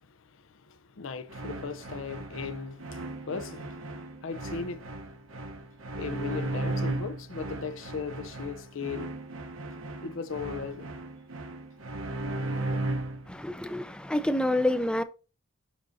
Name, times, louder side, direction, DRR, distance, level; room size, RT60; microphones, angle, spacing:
voice 1, 0.7-4.9 5.9-9.1 10.0-10.9, left 5 dB, 65° left, 0.6 m, -37 dB
sound 1, 1.3-13.3, right 2 dB, 75° right, 0.9 m, -36 dB
voice 2, 13.3-15.0, left 1 dB, 5° left, 0.4 m, -27 dB
11.5 x 3.8 x 2.7 m
head